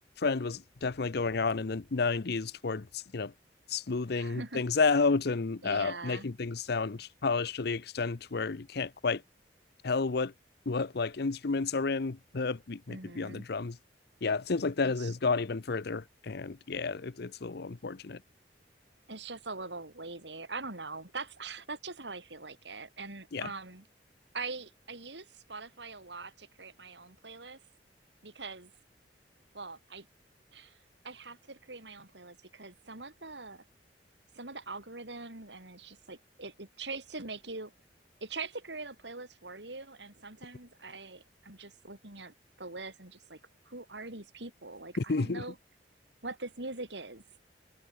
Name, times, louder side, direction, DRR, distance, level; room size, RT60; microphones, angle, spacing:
voice 1, 0.2-3.3 3.7-9.2 9.8-10.3 10.7-13.8 14.2-18.2 23.3-23.5 45.0-45.4, left 4 dB, 65° left, 0.7 m, -31 dB
voice 2, 4.1-4.6 5.6-6.3 12.9-13.5 14.8-15.1 19.1-23.9 24.3-27.6 28.2-28.7 29.5-30.1 30.5-30.8 31.0-33.6 34.3-37.7 38.2-43.4 43.7-45.6 46.2-47.2, right 3 dB, 75° right, 5.3 m, -43 dB
head